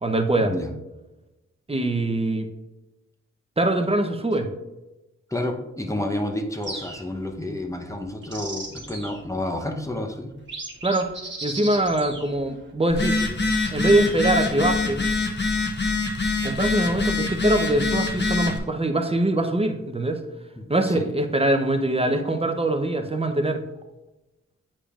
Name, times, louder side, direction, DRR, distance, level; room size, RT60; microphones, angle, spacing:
voice 1, 0.0-0.5 1.7-2.5 3.6-4.5 10.8-11.1 11.4-13.2 13.7-15.0 16.4-20.2 20.7-23.6, right 1 dB, 20° right, 6 dB, 0.8 m, -23 dB
voice 2, 5.3-10.3 20.6-21.1, left 1 dB, 10° left, 3 dB, 0.8 m, -30 dB
sound 1, 6.6-7.3 8.0-9.3 9.9-10.0 10.4-12.7 13.5-14.5, right 2 dB, 40° right, 1.3 m, -37 dB
Telephone, 12.9-18.6, left 3 dB, 35° left, 1.1 m, -24 dB
8.5 x 5.0 x 2.5 m, 0.99 s
cardioid pair, 70°, 30 cm